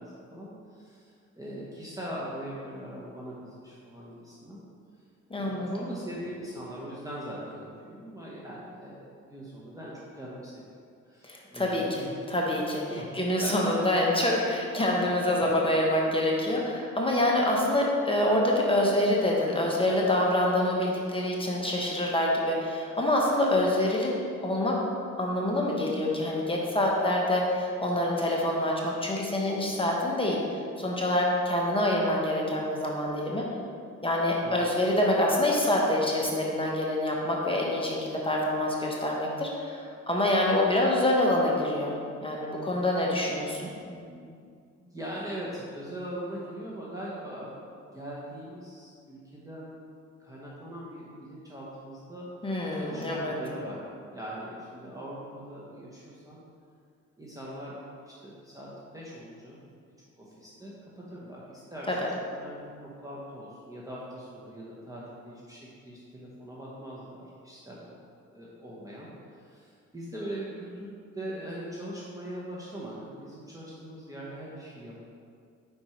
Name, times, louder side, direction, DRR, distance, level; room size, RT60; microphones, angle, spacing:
voice 1, 0.0-4.6 5.4-10.8 11.1-12.3 12.9-13.1 13.4-13.8 14.7-15.2 34.3-34.6 43.3-43.4 43.8-44.3 44.8-47.6 47.9-49.8 50.2-52.3 52.7-53.8 54.1-56.4 57.2-57.8 58.0-59.7 60.2-61.9 62.3-65.6 65.9-68.0 68.3-69.1 69.4-75.0, right 1 dB, 10° right, -6 dB, 1.0 m, -41 dB
voice 2, 5.3-5.7 11.2-24.1 24.4-24.7 25.2-30.4 30.8-33.4 34.0-43.7 52.4-53.3 61.9-62.0, left 1 dB, 20° left, -2 dB, 0.9 m, -26 dB
5.2 x 4.4 x 4.4 m, 2.3 s
cardioid pair, 90°, 30 cm